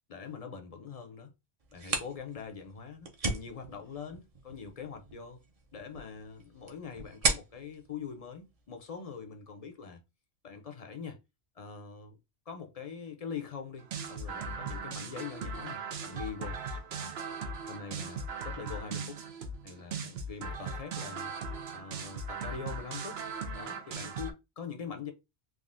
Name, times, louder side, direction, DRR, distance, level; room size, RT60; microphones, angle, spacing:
voice 1, 0.1-1.3 1.7-5.4 5.7-10.0 10.4-11.2 11.6-12.2 12.5-16.6 16.9-17.2 17.7-19.2 19.6-21.3 21.7-23.2 23.5-25.1, left 6 dB, 45° left, 0.5 m, -43 dB
sound 1, 1.6-9.1, right 3 dB, 40° right, 0.6 m, -37 dB
sound 2, 13.8-24.3, right 4 dB, 75° right, 0.8 m, -38 dB
3.5 x 2.4 x 2.4 m
omnidirectional pair, 1.1 m